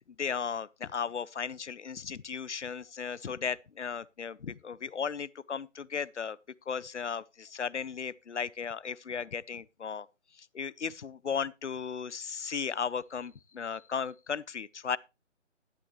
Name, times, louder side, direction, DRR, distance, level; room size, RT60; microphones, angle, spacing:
voice 1, 0.2-6.4 6.7-10.1 10.4-15.0, left 6 dB, 65° left, 0.6 m, -36 dB
11.5 x 10.5 x 3.1 m
figure-of-eight pair, 150°, 38 cm